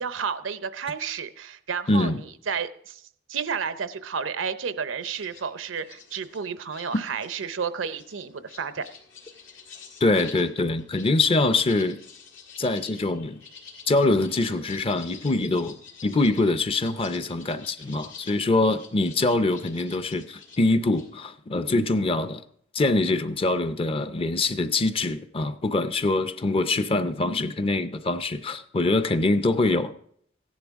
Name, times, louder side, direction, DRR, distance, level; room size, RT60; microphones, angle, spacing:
voice 1, 0.0-3.0 3.3-8.9, right 6 dB, 80° right, 0.6 m, -31 dB
voice 2, 1.9-2.2 10.0-12.0 12.6-13.4 13.9-22.4 22.7-29.9, left 2 dB, 30° left, 0.5 m, -24 dB
sound 1, 5.0-21.1, left 6 dB, 80° left, 1.9 m, -48 dB
15.0 x 10.5 x 3.5 m
head